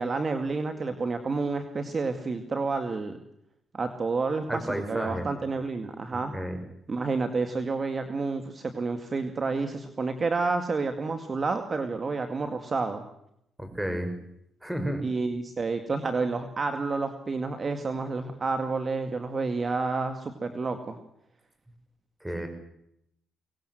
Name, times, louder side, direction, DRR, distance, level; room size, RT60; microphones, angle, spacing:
voice 1, 0.0-3.2 3.7-6.3 6.9-13.0 15.0-21.0, right 4 dB, 35° right, 7 dB, 2.1 m, -29 dB
voice 2, 4.5-5.3 6.3-6.6 13.6-14.1 14.6-15.1 22.2-22.5, equal, 5° right, 7 dB, 5.6 m, -31 dB
24.0 x 19.0 x 7.9 m, 0.77 s
cardioid pair, 90°, 0 cm